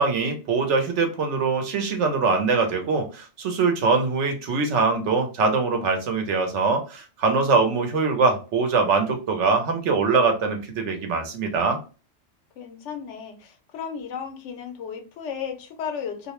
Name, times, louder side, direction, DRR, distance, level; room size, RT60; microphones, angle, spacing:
voice 1, 0.0-11.8, right 4 dB, 85° right, 4 dB, 1.0 m, -23 dB
voice 2, 12.6-16.3, left 7 dB, 80° left, 5 dB, 0.9 m, -34 dB
2.5 x 2.0 x 2.9 m, 0.33 s
omnidirectional pair, 1.2 m